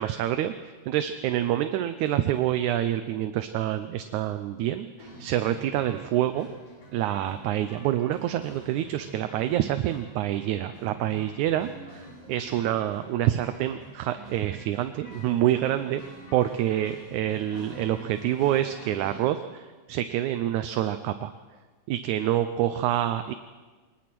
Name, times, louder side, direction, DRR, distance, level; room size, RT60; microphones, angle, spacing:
voice 1, 0.0-6.5 6.9-16.0 16.3-21.3 21.9-23.3, right 12 dB, 80° right, 9 dB, 2.1 m, -27 dB
sound 1, 5.0-19.2, right 1 dB, 90° left, 6.7 m, -47 dB
22.5 x 20.0 x 6.1 m, 1.4 s
omnidirectional pair, 3.5 m